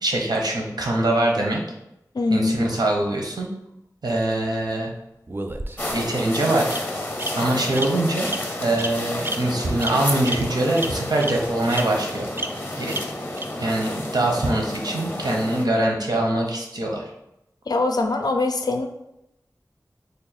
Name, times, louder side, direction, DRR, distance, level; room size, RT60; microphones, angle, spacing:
voice 1, 0.0-1.6 2.3-3.5 4.0-4.9 5.9-6.7 7.3-8.3 8.6-12.3 12.8-12.9 13.6-17.0, right 1 dB, 80° right, 0 dB, 0.7 m, -23 dB
voice 2, 2.1-2.5 17.7-18.9, left 2 dB, 75° left, 5 dB, 0.4 m, -22 dB
Bird vocalization bird call bird song, 5.3-6.0 6.7-6.8 7.2-7.3 7.8-7.9 8.3-8.4 8.8-8.9 9.2-9.4 9.8-9.9 10.3-10.4 10.8-10.9 11.2-11.3 11.7-11.8 12.4-12.5 12.9-13.0 13.4-13.5, right 2 dB, 35° right, 0.3 m, -29 dB
sound 1, 5.8-15.7, left 1 dB, 30° left, 0.6 m, -31 dB
3.3 x 2.3 x 4.0 m, 0.86 s
wide cardioid pair, 45°, 7 cm